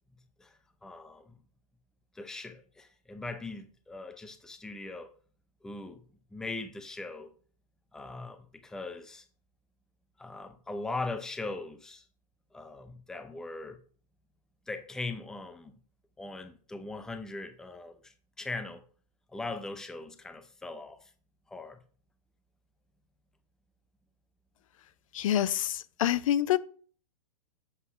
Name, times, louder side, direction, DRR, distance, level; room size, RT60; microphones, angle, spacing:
voice 1, 0.4-1.4 2.1-5.1 5.6-6.0 6.3-7.3 7.9-9.3 10.2-12.0 12.5-13.8 14.7-15.7 16.2-18.8 19.3-21.1 21.5-21.8, left 3 dB, 5° left, 0.5 m, -40 dB
voice 2, 25.1-26.6, left 11 dB, 60° left, 0.5 m, -27 dB
7.8 x 4.1 x 5.6 m
hypercardioid pair, 140°, 19 cm